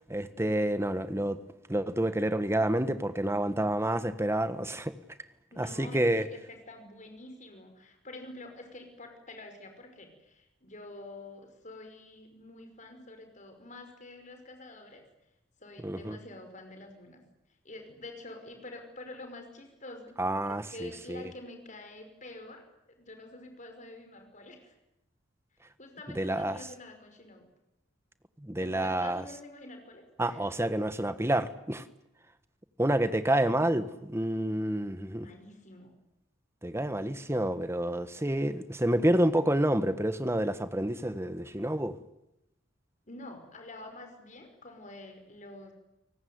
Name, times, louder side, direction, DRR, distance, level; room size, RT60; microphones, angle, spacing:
voice 1, 0.1-1.4 1.7-4.9 5.6-6.3 15.8-16.2 20.2-21.2 26.1-26.6 28.4-29.2 30.2-31.8 32.8-35.3 36.6-42.0, right 1 dB, 15° right, 1.3 m, -28 dB
voice 2, 5.5-15.0 15.6-17.2 17.6-20.1 20.4-24.7 25.8-27.5 28.6-30.5 35.1-35.9 43.1-45.7, left 2 dB, 40° left, 5.5 m, -47 dB
30.0 x 18.5 x 9.6 m
head